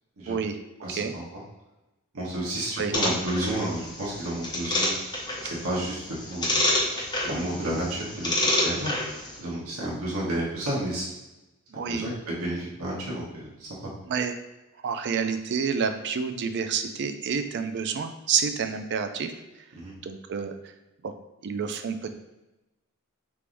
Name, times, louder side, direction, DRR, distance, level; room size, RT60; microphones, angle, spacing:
voice 1, 0.3-0.6 0.9-1.1 2.8-2.9 11.7-12.1 14.1-14.4 14.8-19.3 20.0-20.7 21.0-21.1 21.4-22.1, right 6 dB, 55° right, 8 dB, 0.4 m, -29 dB
voice 2, 0.8-1.4 2.1-4.9 5.6-6.8 7.2-8.9 9.4-11.1 11.7-13.9 19.8-20.0, right 1 dB, 90° right, -6 dB, 1.2 m, -31 dB
sound 1, 2.9-9.4, left 1 dB, 20° left, 0.8 m, -29 dB
4.6 x 3.4 x 2.6 m, 1.0 s
head